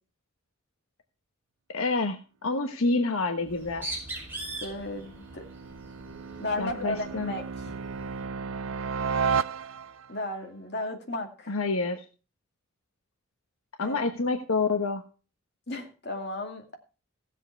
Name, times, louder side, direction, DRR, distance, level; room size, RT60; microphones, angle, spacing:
voice 1, 1.7-3.9 6.6-7.3 11.5-12.0 13.8-15.0, left 3 dB, 80° left, 6 dB, 1.1 m, -28 dB
Bird, 3.4-8.3, right 2 dB, 10° right, 5.4 m, -41 dB
sound 1, 3.7-10.2, right 6 dB, 70° right, 0.5 m, -34 dB
voice 2, 4.6-5.5 6.4-7.4 10.1-11.5 13.8-14.0 15.7-16.8, left 2 dB, 50° left, 3 dB, 2.3 m, -34 dB
16.5 x 7.5 x 4.6 m, 0.34 s
head